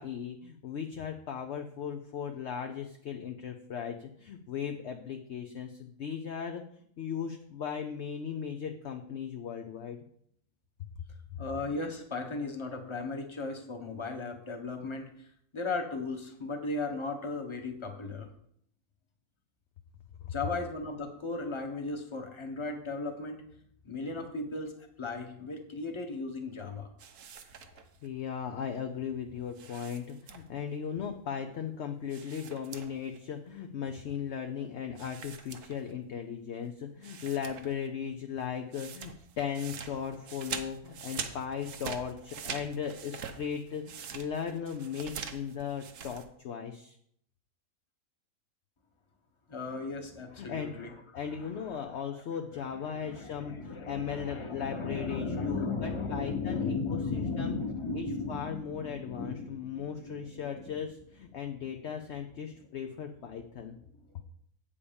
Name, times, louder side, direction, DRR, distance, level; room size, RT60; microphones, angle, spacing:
voice 1, 0.0-6.6 7.0-10.0 20.2-20.3 28.0-43.9 44.1-47.0 50.4-50.8 51.1-57.6 57.9-63.8, left 7 dB, 60° left, 6 dB, 0.8 m, -37 dB
voice 2, 11.4-15.3 15.5-18.3 20.3-23.4 23.8-26.9 49.5-51.8 52.9-60.7, left 3 dB, 20° left, 3 dB, 1.1 m, -36 dB
sound 1, 27.0-28.1 29.5-30.7 32.1-33.2 33.5-33.6 35.0-36.1 36.6-36.7 37.0-37.9 38.1-46.2, right 7 dB, 75° right, 1.4 m, -43 dB
8.4 x 7.0 x 5.2 m, 0.69 s
omnidirectional pair, 1.6 m